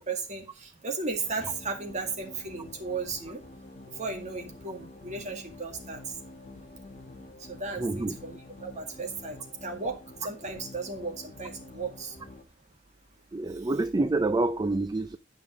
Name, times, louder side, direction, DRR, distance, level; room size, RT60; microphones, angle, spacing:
voice 1, 0.0-3.4 4.0-6.0 7.5-12.2, right 4 dB, 40° right, 2.0 m, -35 dB
sound 1, 1.2-12.4, left 2 dB, 40° left, 1.2 m, -48 dB
voice 2, 7.8-8.2 13.3-15.2, right 2 dB, 20° right, 0.4 m, -27 dB
9.6 x 5.4 x 5.0 m
head